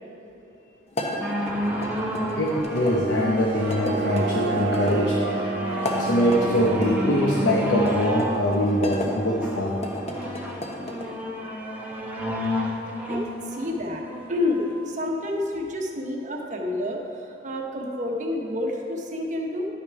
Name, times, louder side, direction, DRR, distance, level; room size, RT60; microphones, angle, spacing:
sound 1, 0.9-3.0 3.7-5.0 5.7-6.9 7.8-9.1 9.7-11.1, left 1 dB, 35° left, 1.1 m, -33 dB
sound 2, 1.2-14.8 15.5-15.6, equal, 10° right, 1.0 m, -31 dB
voice 1, 2.3-5.5 5.9-9.8, equal, 80° left, -2 dB, 0.9 m, -23 dB
sound 3, 2.6-8.5, right 4 dB, 60° right, 0.5 m, -33 dB
voice 2, 13.1-19.7, left 2 dB, 40° right, 0 dB, 1.0 m, -29 dB
10.5 x 6.7 x 4.6 m, 3.0 s
head